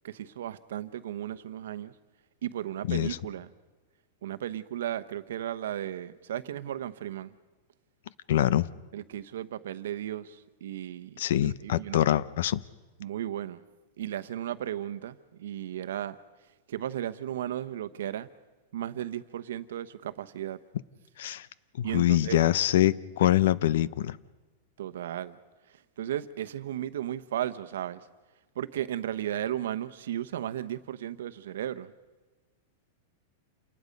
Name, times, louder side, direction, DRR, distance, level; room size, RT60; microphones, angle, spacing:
voice 1, 0.0-1.9 2.4-3.5 4.2-7.3 8.9-12.0 13.0-13.6 14.0-16.2 16.7-18.3 18.7-20.6 21.8-22.4 24.8-25.4 25.7-28.1 28.5-31.9, right 11 dB, 80° right, 1.0 m, -35 dB
voice 2, 8.3-8.7 11.2-12.6 21.2-21.5 21.8-24.2, left 12 dB, 70° left, 0.7 m, -24 dB
28.5 x 19.5 x 5.3 m
supercardioid pair, 170°, 0 cm